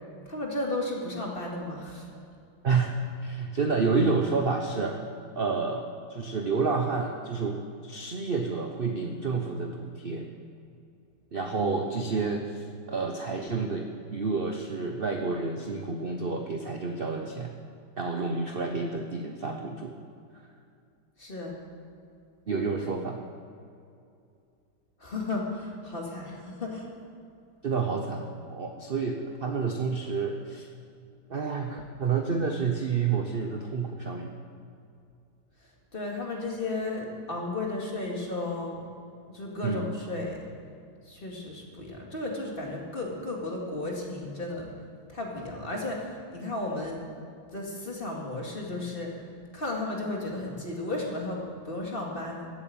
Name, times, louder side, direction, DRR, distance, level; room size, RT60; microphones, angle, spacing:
voice 1, 0.3-2.1 21.2-21.6 25.0-26.9 35.9-38.8 39.3-40.4 41.1-44.7 45.1-47.0 47.5-49.1 49.5-52.5, left 2 dB, 30° left, -1 dB, 2.3 m, -34 dB
voice 2, 2.6-5.0 5.3-5.8 6.1-7.6 7.8-10.3 11.3-13.9 14.1-17.5 18.0-19.9 22.5-23.2 27.6-30.7 31.3-34.3 39.6-39.9, right 4 dB, 45° right, 3 dB, 0.8 m, -29 dB
15.5 x 8.3 x 7.7 m, 2.5 s
omnidirectional pair, 2.1 m